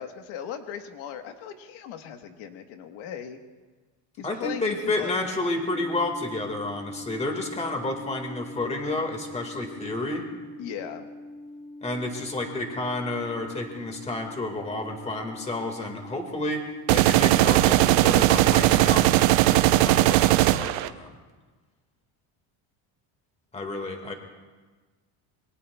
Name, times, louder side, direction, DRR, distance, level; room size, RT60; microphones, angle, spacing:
voice 1, 0.0-3.4 4.2-5.1 10.6-11.1, left 8 dB, 85° left, 6 dB, 1.4 m, -37 dB
voice 2, 4.2-10.2 11.8-21.2 23.5-24.1, left 2 dB, 15° left, 4 dB, 1.8 m, -30 dB
sound 1, 5.7-19.9, left 2 dB, 65° left, 1.9 m, -44 dB
sound 2, 16.9-20.9, right 16 dB, 70° right, 0.7 m, -19 dB
27.0 x 22.5 x 2.3 m, 1.3 s
cardioid pair, 160°, 46 cm